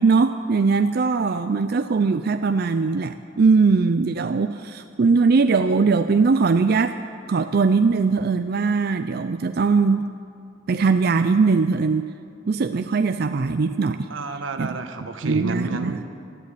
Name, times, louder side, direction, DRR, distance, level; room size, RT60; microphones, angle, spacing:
voice 1, 0.0-7.0 7.3-10.1 10.7-12.1 12.5-14.1 14.6-14.8 15.2-16.0, right 4 dB, 55° right, 8 dB, 0.4 m, -20 dB
voice 2, 14.1-16.0, right 2 dB, 90° right, 7 dB, 1.1 m, -30 dB
13.0 x 11.5 x 8.3 m, 2.3 s
head